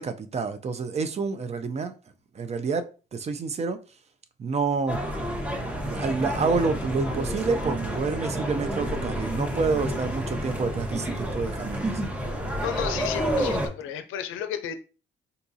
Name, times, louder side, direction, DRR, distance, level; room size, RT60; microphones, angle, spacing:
voice 1, 0.0-1.9 2.4-2.8 3.1-3.8 4.4-5.0 5.8-12.0, right 4 dB, 35° right, 0.4 m, -28 dB
sound 1, 4.9-13.7, equal, 5° right, 0.8 m, -29 dB
voice 2, 12.6-14.7, left 9 dB, 90° left, 0.5 m, -32 dB
3.9 x 2.3 x 2.6 m
cardioid pair, 90°, 20 cm